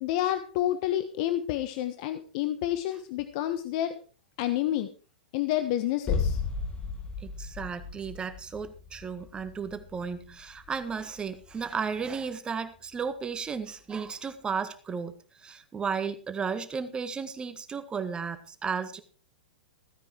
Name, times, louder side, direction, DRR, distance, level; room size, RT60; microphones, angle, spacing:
voice 1, 0.0-3.9 4.4-4.9 5.3-6.4, left 12 dB, 50° left, 10 dB, 1.3 m, -29 dB
sound 1, 6.1-11.8 12.1-12.2, left 5 dB, 20° left, 2.3 m, -35 dB
voice 2, 7.2-19.0, right 6 dB, 15° right, 10 dB, 1.7 m, -34 dB
16.5 x 9.7 x 4.8 m, 0.37 s
hypercardioid pair, 105°, 5 cm